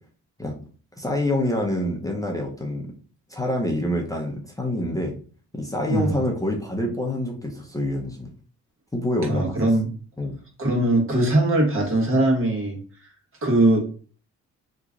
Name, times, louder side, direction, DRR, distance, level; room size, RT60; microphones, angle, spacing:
voice 1, 1.0-2.9 3.3-5.1 5.5-8.3 8.9-9.5 10.2-10.3, left 1 dB, 10° left, 0 dB, 0.7 m, -26 dB
voice 2, 5.9-6.2 9.3-9.9 10.6-12.8 13.4-13.8, right 1 dB, 45° right, -1 dB, 1.4 m, -20 dB
3.0 x 2.3 x 3.7 m, 0.40 s
cardioid pair, 90°, 30 cm